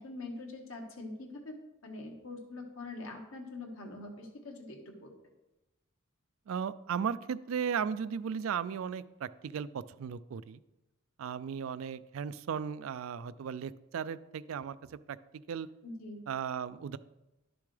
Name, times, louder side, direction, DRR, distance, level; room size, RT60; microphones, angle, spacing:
voice 1, 0.0-1.6 1.8-5.1 15.8-16.2, left 2 dB, 65° left, 1 dB, 1.6 m, -44 dB
voice 2, 6.5-10.6 11.2-15.7 16.3-17.0, right 7 dB, 65° right, 16 dB, 0.3 m, -36 dB
11.5 x 6.9 x 3.3 m, 0.99 s
head